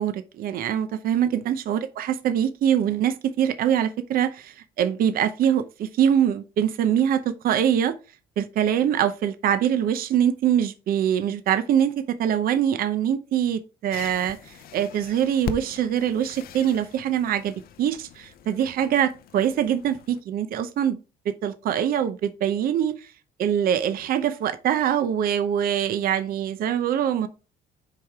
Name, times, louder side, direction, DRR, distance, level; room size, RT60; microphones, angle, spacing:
voice 1, 0.0-7.9 8.4-17.5 17.8-21.0 21.4-23.0 23.4-27.3, right 9 dB, 60° right, 0.7 m, -23 dB
sound 1, 13.9-20.2, left 8 dB, 60° left, 0.7 m, -41 dB
7.6 x 4.9 x 3.5 m
cardioid pair, 110°, 17 cm